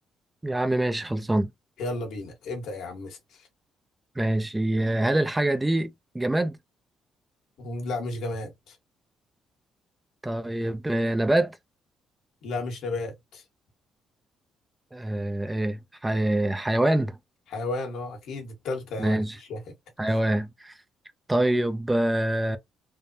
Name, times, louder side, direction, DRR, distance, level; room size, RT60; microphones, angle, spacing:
voice 1, 0.4-1.5 4.2-6.5 10.2-11.5 14.9-17.2 19.0-19.4 20.0-20.7 21.3-22.6, right 1 dB, 15° right, 0.5 m, -25 dB
voice 2, 1.8-3.2 7.6-8.8 12.4-13.4 17.5-19.6, left 2 dB, 80° left, 1.3 m, -33 dB
3.4 x 2.1 x 2.7 m
cardioid pair, 90°, 0 cm